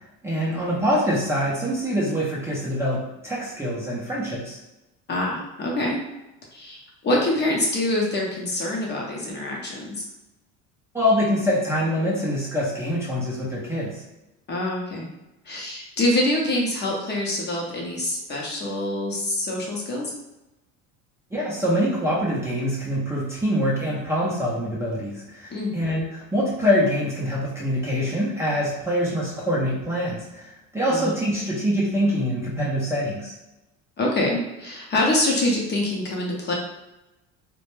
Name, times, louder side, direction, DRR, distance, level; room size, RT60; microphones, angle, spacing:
voice 1, 0.2-4.6 10.9-14.0 21.3-33.3, equal, 10° right, -8 dB, 0.5 m, -24 dB
voice 2, 5.1-6.0 6.5-10.0 14.5-15.1 15.5-20.1 25.5-25.7 30.9-31.1 34.0-36.5, left 1 dB, 30° left, -2 dB, 0.6 m, -25 dB
2.1 x 2.1 x 3.0 m, 0.96 s
supercardioid pair, 110°, 35 cm